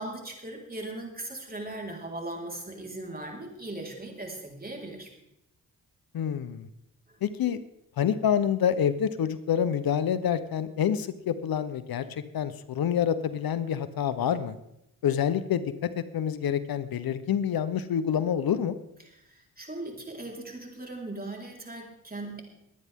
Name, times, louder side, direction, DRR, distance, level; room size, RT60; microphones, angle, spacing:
voice 1, 0.0-5.1 7.1-7.2 19.0-22.4, right 2 dB, 25° right, 0 dB, 4.2 m, -39 dB
voice 2, 6.1-6.7 7.2-7.6 8.0-14.5 15.0-18.7, left 8 dB, 75° left, 13 dB, 0.9 m, -27 dB
21.5 x 9.5 x 3.6 m, 0.82 s
cardioid pair, 60°, 36 cm